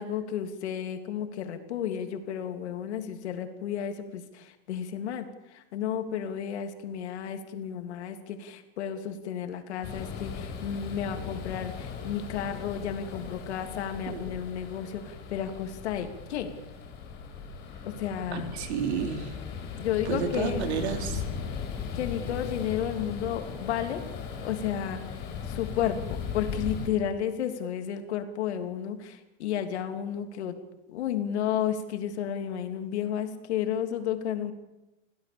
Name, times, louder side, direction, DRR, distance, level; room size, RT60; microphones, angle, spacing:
voice 1, 0.0-16.5 17.8-18.5 19.8-20.7 21.9-24.0 24.4-25.2 25.5-30.6 30.9-34.5, left 9 dB, 85° left, 6 dB, 3.2 m, -32 dB
sound 1, 9.8-26.9, left 6 dB, 30° left, 5.9 m, -38 dB
voice 2, 18.3-19.4 20.1-21.2, right 7 dB, 80° right, 5 dB, 4.1 m, -31 dB
28.0 x 17.0 x 7.1 m, 0.97 s
supercardioid pair, 175°, 33 cm